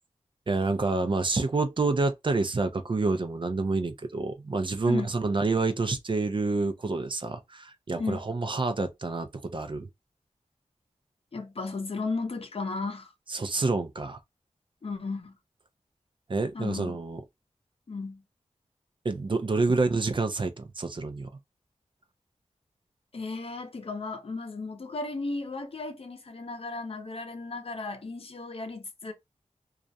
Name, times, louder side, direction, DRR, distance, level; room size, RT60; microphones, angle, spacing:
voice 1, 0.5-9.9 13.3-14.2 16.3-17.2 19.0-21.3, right 3 dB, 40° right, 0.5 m, -28 dB
voice 2, 11.3-13.1 14.8-15.4 16.5-17.0 17.9-18.2 23.1-29.1, left 3 dB, 50° left, 0.6 m, -35 dB
2.4 x 2.0 x 2.6 m
wide cardioid pair, 55°, 12 cm